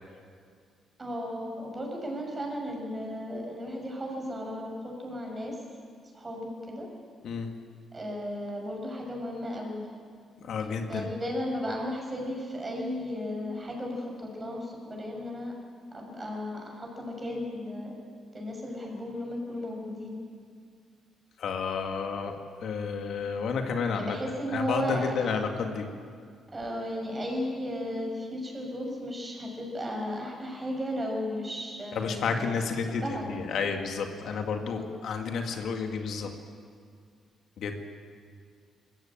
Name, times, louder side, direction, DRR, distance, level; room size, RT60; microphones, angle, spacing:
voice 1, 1.0-5.6 6.1-6.9 7.9-9.8 10.9-15.5 15.9-17.9 18.3-20.2 23.9-25.3 26.5-33.5 34.4-34.9, equal, 25° right, 0 dB, 6.5 m, -35 dB
voice 2, 10.4-11.1 21.4-22.3 22.6-24.2 24.5-25.9 31.9-36.3 37.6-37.8, left 5 dB, 70° left, 4 dB, 1.9 m, -31 dB
20.5 x 15.0 x 8.8 m, 2.1 s
cardioid pair, 90°, 0 cm